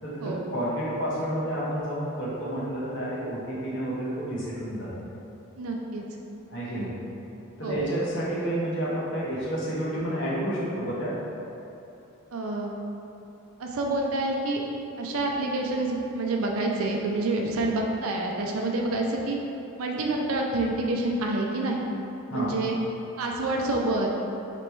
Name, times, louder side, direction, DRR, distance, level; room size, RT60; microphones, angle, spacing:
voice 1, 0.0-4.9 6.5-6.9 7.6-11.2 22.3-22.5, right 1 dB, 55° left, -7 dB, 1.0 m, -30 dB
voice 2, 5.6-6.0 7.6-7.8 12.3-12.7 13.6-14.6 15.0-19.4 19.8-21.9 22.3-22.8 23.2-24.2, right 2 dB, 75° right, 0 dB, 0.5 m, -27 dB
3.3 x 3.0 x 4.5 m, 2.8 s
head